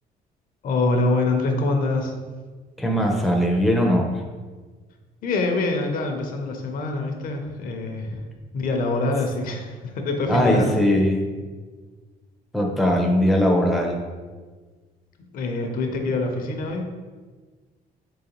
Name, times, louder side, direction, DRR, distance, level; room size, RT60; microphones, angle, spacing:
voice 1, 0.6-2.2 5.2-8.2 8.5-10.6 15.3-16.8, left 2 dB, 55° left, 3 dB, 0.6 m, -25 dB
voice 2, 2.8-4.1 10.3-11.3 12.5-14.0, equal, ahead, 0 dB, 0.5 m, -20 dB
3.9 x 3.1 x 2.9 m, 1.4 s
cardioid pair, 110°, 17 cm